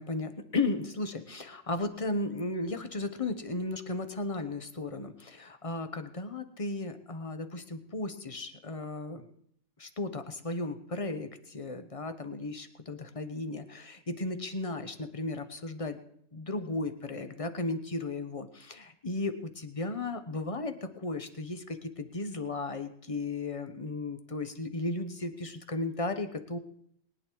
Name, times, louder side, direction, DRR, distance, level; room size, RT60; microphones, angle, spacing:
voice 1, 0.0-9.2 9.8-16.0 16.3-26.6, left 2 dB, 25° left, 9 dB, 0.9 m, -35 dB
22.0 x 9.2 x 4.7 m, 0.69 s
omnidirectional pair, 1.5 m